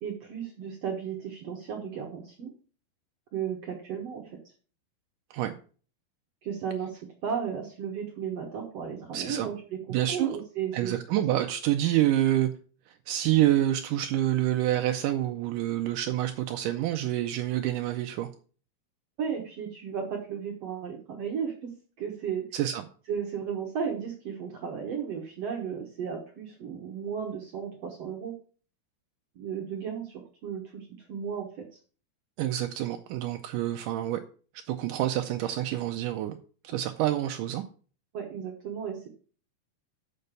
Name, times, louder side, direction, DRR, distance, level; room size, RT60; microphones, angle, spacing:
voice 1, 0.0-2.5 3.3-4.4 6.4-11.0 19.2-21.7 22.0-22.4 23.1-28.3 29.4-31.7 38.1-39.1, right 7 dB, 60° right, 1 dB, 1.7 m, -34 dB
voice 2, 9.1-9.5 9.9-10.3 10.7-12.5 12.9-18.3 22.5-22.8 32.4-34.2 34.7-36.4 36.6-37.6, right 13 dB, 80° right, 6 dB, 1.9 m, -27 dB
6.7 x 6.7 x 6.7 m, 0.41 s
omnidirectional pair, 4.3 m